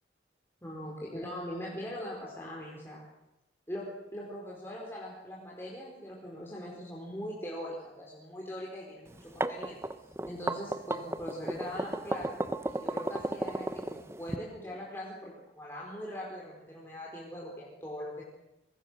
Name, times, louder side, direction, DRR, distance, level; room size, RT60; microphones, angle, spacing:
voice 1, 0.6-3.0 3.7-3.8 4.1-9.8 10.3-18.2, equal, 15° left, -4 dB, 4.8 m, -41 dB
sound 1, 9.1-14.4, right 1 dB, 15° right, 0.9 m, -33 dB
27.5 x 23.0 x 6.5 m, 0.93 s
head